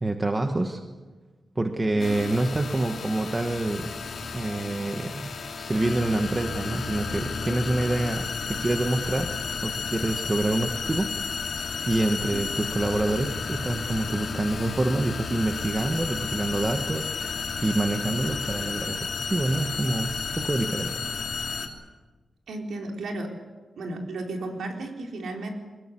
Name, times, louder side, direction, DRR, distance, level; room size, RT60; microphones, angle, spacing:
voice 1, 0.0-0.8 1.5-3.9 4.3-11.1 11.9-21.0, right 2 dB, 20° right, 5 dB, 1.3 m, -27 dB
sound 1, 2.0-21.7, left 5 dB, 60° left, 2.9 m, -32 dB
voice 2, 22.5-23.3 23.8-25.5, right 2 dB, 90° right, 2 dB, 4.3 m, -34 dB
23.0 x 21.5 x 8.5 m, 1.3 s
wide cardioid pair, 165°, 0 cm